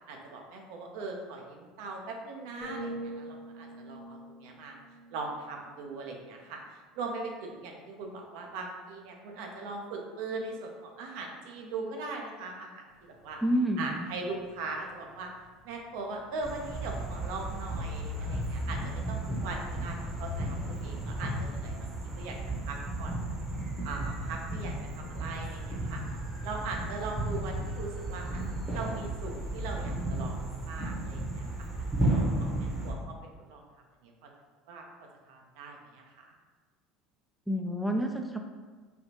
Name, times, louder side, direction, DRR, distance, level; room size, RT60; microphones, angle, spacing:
voice 1, 0.1-4.8 5.1-13.4 13.8-15.3 15.6-21.9 22.2-23.3 23.8-26.0 26.4-28.4 28.7-31.5 31.8-33.1 33.5-33.6 34.0-34.3 34.7-34.8 35.3-36.3, right 3 dB, 70° right, 1 dB, 0.5 m, -40 dB
sound 1, 2.6-6.5 7.0-7.3, right 1 dB, 30° left, 1.0 m, -44 dB
sound 2, 13.0-13.5 13.8-21.6, left 4 dB, 65° left, 0.6 m, -41 dB
voice 2, 13.4-14.1 37.5-38.4, equal, ahead, 3 dB, 0.3 m, -29 dB
sound 3, 16.4-32.9, right 2 dB, 25° right, 0.8 m, -34 dB
3.4 x 2.4 x 2.7 m, 1.4 s
hypercardioid pair, 80°, 0 cm